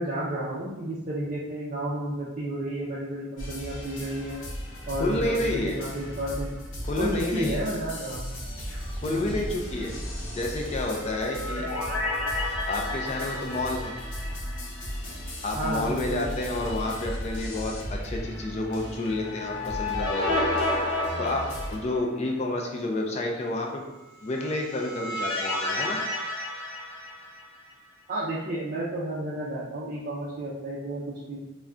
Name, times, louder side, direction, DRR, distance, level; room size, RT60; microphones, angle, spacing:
voice 1, 0.0-4.4 4.9-6.5 7.0-8.4 9.0-9.4 15.5-16.3 28.1-31.0 31.3-31.4, right 1 dB, 40° right, -8 dB, 0.4 m, -32 dB
sound 1, 3.4-21.8, equal, 65° left, 0.7 m, -36 dB
voice 2, 5.0-5.8 6.8-7.7 9.0-9.9 10.3-11.7 12.7-13.9 15.4-20.6 21.2-21.4 21.7-23.9 24.2-26.0, left 2 dB, 35° left, 1 dB, 0.3 m, -30 dB
sound 2, 10.9-15.2 15.5-15.6 19.1-22.3 24.3-27.7, left 2 dB, 80° left, 1.0 m, -31 dB
2.2 x 2.2 x 3.6 m, 1.0 s
head